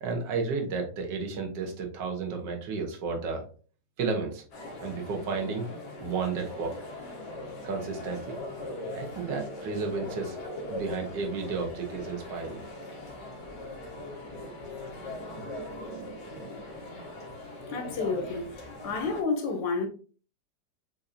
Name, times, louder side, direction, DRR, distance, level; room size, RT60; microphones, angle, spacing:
voice 1, 0.0-3.4 4.0-4.4 4.8-5.7 6.0-6.8 7.6-8.4 8.9-10.4 10.7-12.6 13.5-13.7 14.1-14.6 15.7-16.8, right 4 dB, 75° right, 1.7 m, -33 dB
sound 1, 4.5-19.2, left 2 dB, 65° left, 1.9 m, -40 dB
voice 2, 17.7-18.5 18.8-19.9, left 4 dB, 85° left, 1.7 m, -29 dB
6.9 x 2.7 x 2.6 m
omnidirectional pair, 2.0 m